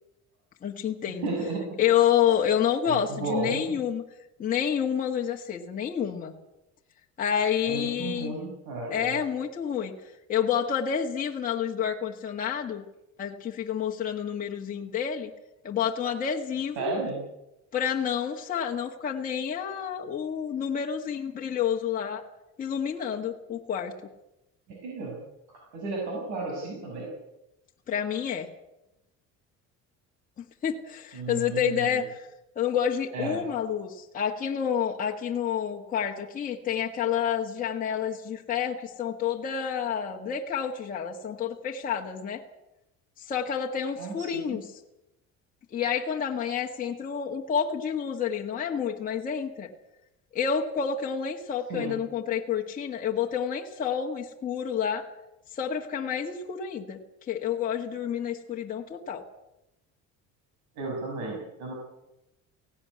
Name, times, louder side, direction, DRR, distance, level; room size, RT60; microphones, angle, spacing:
voice 1, 0.6-1.3 1.8-4.0 4.4-6.3 7.2-8.3 8.9-9.9 10.3-12.8 13.2-15.3 15.6-16.9 17.7-22.2 22.6-23.9 27.9-28.5 30.4-32.3 32.5-42.4 43.2-44.6 45.7-49.7 50.3-55.1 55.5-57.0 57.3-59.2, left 8 dB, 25° left, 0 dB, 1.6 m, -29 dB
voice 2, 1.2-1.6 2.8-3.7 7.6-9.1 16.8-17.2 24.7-25.2 25.7-27.1 31.1-32.0 33.1-33.4 44.0-44.6 51.7-51.9 60.7-61.7, right 3 dB, 65° right, -1 dB, 6.6 m, -33 dB
17.5 x 17.5 x 9.5 m, 0.91 s
cardioid pair, 165°, 31 cm